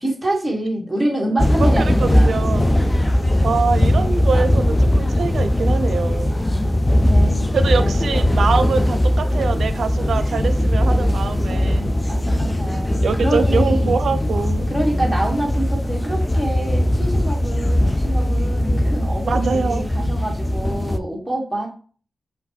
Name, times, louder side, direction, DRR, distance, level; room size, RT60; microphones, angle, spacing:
voice 1, 0.0-2.4 6.2-8.0 12.1-14.0 14.7-21.7, right 1 dB, 5° right, -2 dB, 1.6 m, -26 dB
sound 1, 1.4-21.0, left 1 dB, 15° left, 0.4 m, -19 dB
voice 2, 1.6-2.8 3.4-6.3 7.5-11.9 13.0-14.7 19.3-19.9, right 5 dB, 80° right, 9 dB, 0.5 m, -24 dB
5.4 x 2.1 x 4.6 m, 0.40 s
wide cardioid pair, 100°, 0 cm